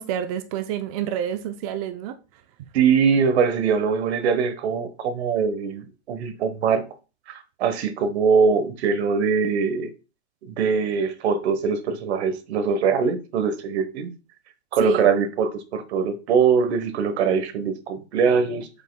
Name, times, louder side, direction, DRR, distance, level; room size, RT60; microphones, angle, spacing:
voice 1, 0.0-2.2 14.8-15.1, right 9 dB, 35° right, 0.4 m, -28 dB
voice 2, 2.7-6.8 7.3-9.9 10.4-14.1 14.7-18.7, right 6 dB, 70° right, 1.2 m, -22 dB
7.4 x 5.6 x 2.2 m
supercardioid pair, 155°, 34 cm